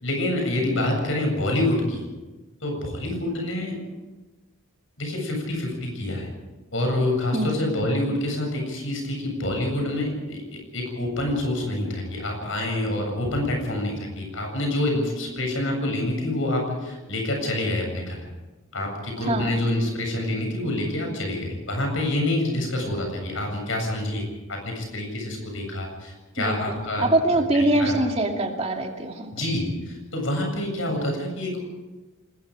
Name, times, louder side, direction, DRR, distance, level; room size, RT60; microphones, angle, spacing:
voice 1, 0.0-2.1 2.6-3.8 5.0-6.3 6.7-18.2 18.7-27.1 27.8-27.9 29.3-31.6, left 1 dB, 70° left, 2 dB, 7.6 m, -27 dB
voice 2, 19.2-19.5 26.4-29.3, right 1 dB, 30° right, 2 dB, 2.6 m, -24 dB
27.0 x 20.0 x 5.1 m, 1.2 s
head